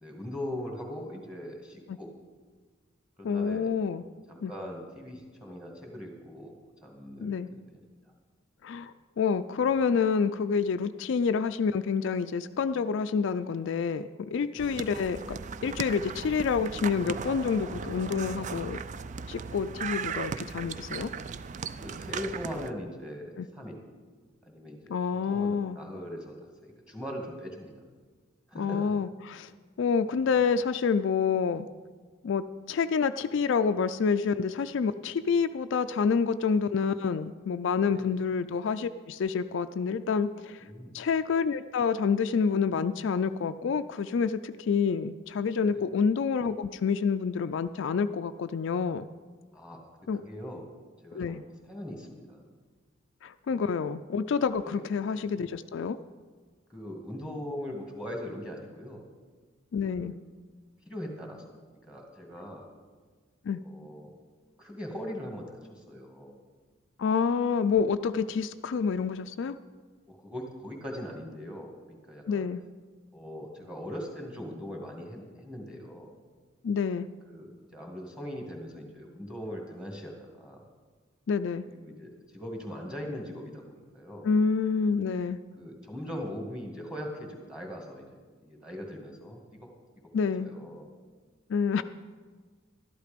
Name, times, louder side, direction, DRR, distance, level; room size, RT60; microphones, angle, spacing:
voice 1, 0.0-2.1 3.2-3.7 4.3-7.6 14.6-14.8 21.8-23.8 24.4-25.0 25.3-26.4 26.6-27.7 28.5-28.9 30.1-30.2 37.8-38.1 40.6-41.0 45.6-45.9 49.5-49.8 50.1-50.7 51.0-52.4 53.5-53.7 54.6-54.8 56.7-59.0 59.8-60.1 60.9-61.4 61.8-62.7 63.6-64.1 64.6-66.4 70.1-72.5 73.1-76.1 77.3-80.6 81.7-84.3 85.6-88.1 88.4-89.7 90.4-90.9, equal, 5° right, 1 dB, 1.9 m, -40 dB
voice 2, 3.2-4.0 4.4-4.5 7.2-7.5 8.6-18.8 19.3-21.1 23.4-23.5 24.9-25.8 28.6-29.5 29.8-31.7 32.2-40.6 40.9-49.1 50.1-50.2 51.1-51.4 53.2-56.0 59.7-60.1 63.5-63.6 67.0-69.6 72.3-72.6 76.6-77.1 81.3-81.7 84.2-85.4 90.1-90.5 91.5-91.8, left 5 dB, 60° left, 11 dB, 0.3 m, -28 dB
sound 1, 14.6-22.7, right 5 dB, 35° right, 0.3 m, -37 dB
12.5 x 11.5 x 5.1 m, 1.5 s
head